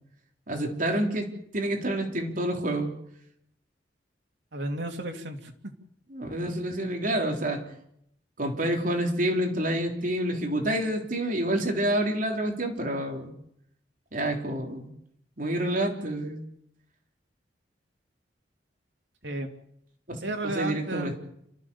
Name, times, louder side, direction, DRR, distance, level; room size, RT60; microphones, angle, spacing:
voice 1, 0.5-2.9 6.1-7.6 8.4-13.3 14.1-14.9 15.4-16.4 20.1-21.2, right 1 dB, 50° right, 2 dB, 3.7 m, -28 dB
voice 2, 4.5-5.5 19.2-19.5 20.2-21.1, right 1 dB, 80° right, 4 dB, 2.9 m, -32 dB
29.0 x 14.0 x 7.1 m, 0.74 s
head